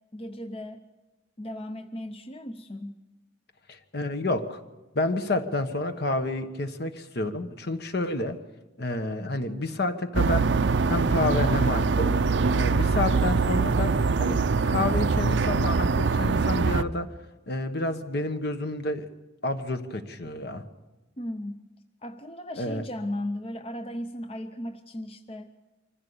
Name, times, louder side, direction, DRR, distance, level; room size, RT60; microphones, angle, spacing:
voice 1, 0.1-0.8 1.4-3.0 21.2-21.6 22.0-25.5, left 1 dB, 30° left, 7 dB, 0.7 m, -36 dB
voice 2, 3.7-4.6 4.9-8.4 8.8-10.5 10.9-12.2 12.5-17.1 17.5-19.1 19.4-20.7 22.6-22.8, left 2 dB, 60° left, 8 dB, 1.3 m, -29 dB
sound 1, 10.1-16.8, right 4 dB, 75° right, 0.6 m, -23 dB
24.5 x 15.5 x 7.0 m, 1.2 s
head